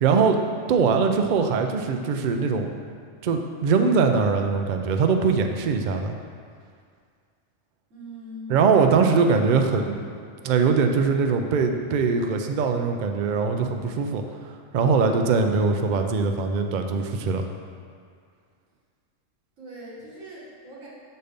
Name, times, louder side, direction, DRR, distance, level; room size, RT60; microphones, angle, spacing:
voice 1, 0.0-0.4 0.7-2.7 3.2-6.1 8.5-10.0 10.4-17.5, right 5 dB, 60° right, 5 dB, 0.5 m, -22 dB
voice 2, 7.9-8.6 19.6-20.9, equal, 85° right, -6 dB, 1.9 m, -41 dB
6.6 x 4.3 x 5.1 m, 2.1 s
omnidirectional pair, 1.3 m